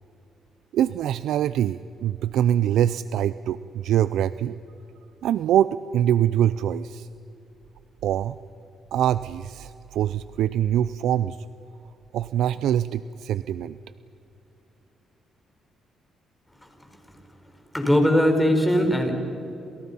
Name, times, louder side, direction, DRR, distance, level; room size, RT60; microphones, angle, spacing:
voice 1, 0.7-4.6 5.2-7.1 8.0-8.4 8.9-11.4 12.1-13.8, right 11 dB, 80° right, 15 dB, 0.5 m, -24 dB
voice 2, 17.7-19.1, equal, 5° left, 4 dB, 4.9 m, -19 dB
29.5 x 28.0 x 5.6 m, 2.9 s
cardioid pair, 90°, 0 cm